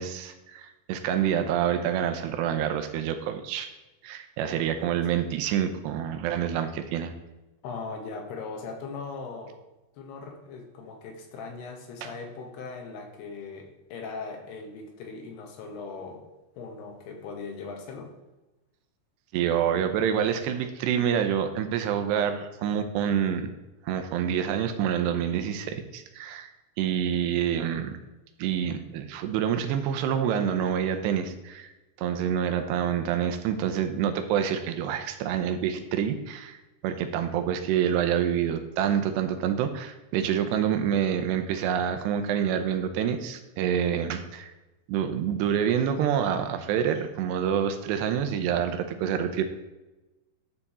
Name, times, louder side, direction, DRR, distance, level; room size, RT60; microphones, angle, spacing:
voice 1, 0.0-3.7 4.0-7.1 19.3-23.5 23.8-26.5 26.8-28.0 28.4-31.7 32.0-44.5 44.9-49.4, right 9 dB, 85° right, 8 dB, 2.8 m, -27 dB
voice 2, 7.6-9.6 9.9-16.3 16.6-18.1, left 4 dB, 75° left, 4 dB, 3.1 m, -39 dB
11.0 x 6.8 x 4.2 m, 1.1 s
omnidirectional pair, 5.0 m